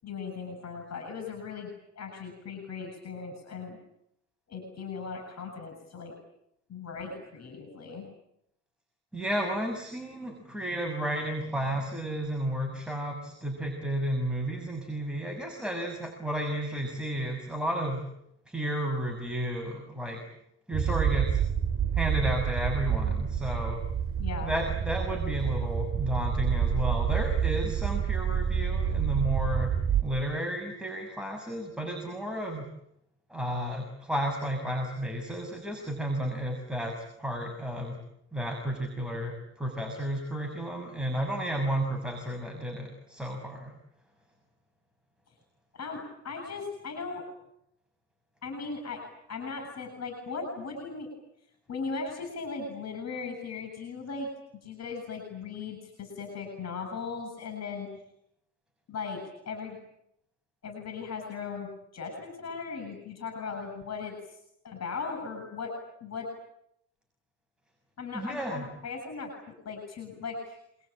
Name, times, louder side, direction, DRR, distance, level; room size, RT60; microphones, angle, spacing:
voice 1, 0.0-3.8 4.5-6.1 6.7-8.1 24.2-24.5 45.7-47.2 48.4-49.0 49.3-51.1 51.7-54.3 54.6-57.9 58.9-59.8 60.6-65.7 66.0-66.3 68.0-69.3 69.6-70.6, left 4 dB, 60° left, 5 dB, 7.7 m, -38 dB
voice 2, 9.1-18.0 18.5-20.2 20.7-21.4 21.9-23.8 24.4-29.7 30.0-32.7 33.3-38.0 38.3-43.7 68.1-68.7, right 1 dB, 5° right, 3 dB, 6.4 m, -32 dB
sound 1, 20.7-30.0, right 8 dB, 45° right, 3.9 m, -28 dB
27.5 x 22.5 x 8.9 m, 0.77 s
cardioid pair, 90°, 30 cm